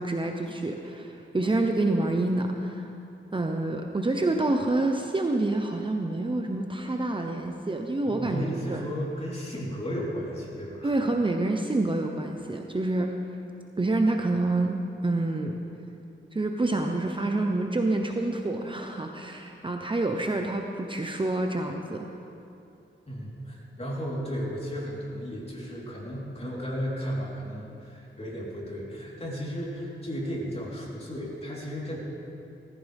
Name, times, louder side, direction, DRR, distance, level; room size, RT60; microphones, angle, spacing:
voice 1, 0.0-2.9 3.3-8.8 10.8-13.1 13.8-15.6 16.3-22.1, right 2 dB, 25° right, 3 dB, 0.9 m, -27 dB
voice 2, 8.1-10.9 23.1-32.0, equal, 30° left, -5 dB, 4.0 m, -34 dB
18.5 x 15.0 x 3.6 m, 2.7 s
cardioid pair, 75°, 21 cm